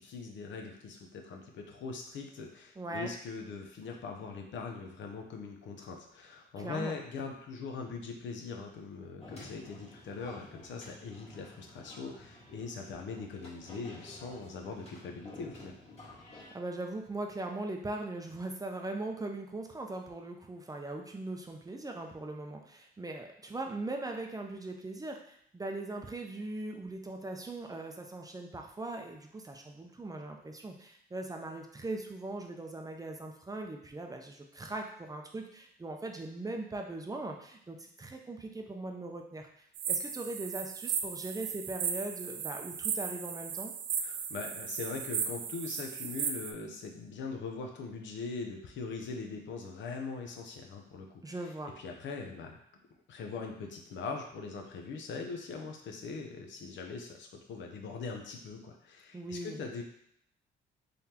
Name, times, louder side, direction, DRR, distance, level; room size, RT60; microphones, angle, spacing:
voice 1, 0.0-15.7 44.0-51.3 51.8-52.6 53.1-59.8, left 4 dB, 70° left, 2 dB, 0.7 m, -41 dB
voice 2, 2.8-3.1 6.6-7.0 16.5-43.7 51.2-51.7 59.1-59.6, right 2 dB, 20° right, 3 dB, 0.5 m, -40 dB
sound 1, 9.2-16.5, left 1 dB, 30° left, 1.6 m, -51 dB
sound 2, 39.7-46.5, right 7 dB, 70° right, 0.4 m, -36 dB
3.9 x 3.3 x 2.9 m, 0.69 s
cardioid pair, 90°, 20 cm